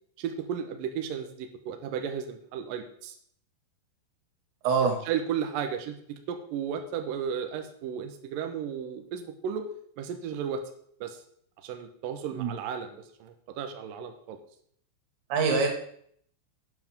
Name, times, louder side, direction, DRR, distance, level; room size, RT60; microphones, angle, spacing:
voice 1, 0.2-3.2 4.8-9.7 10.0-10.6 11.0-11.2 11.6-14.4, right 8 dB, 90° right, 5 dB, 1.9 m, -34 dB
voice 2, 4.6-5.0 12.3-12.5 15.3-15.7, right 5 dB, 65° right, 2 dB, 4.3 m, -24 dB
12.0 x 9.8 x 3.8 m, 0.63 s
omnidirectional pair, 5.8 m